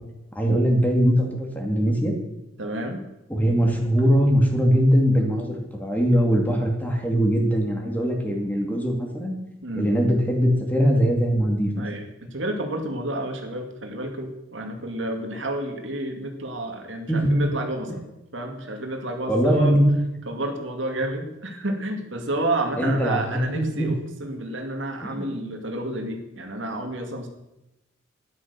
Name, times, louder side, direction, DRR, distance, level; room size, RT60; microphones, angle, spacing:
voice 1, 0.0-2.2 3.3-9.4 9.8-11.8 17.1-17.4 19.3-19.9 22.8-23.9 25.0-25.3, equal, 10° left, 1 dB, 2.5 m, -21 dB
voice 2, 2.6-3.0 9.6-9.9 11.8-18.0 18.3-19.8 20.3-24.0 24.2-27.3, right 1 dB, 75° right, 4 dB, 2.2 m, -30 dB
12.0 x 10.5 x 6.8 m, 0.92 s
head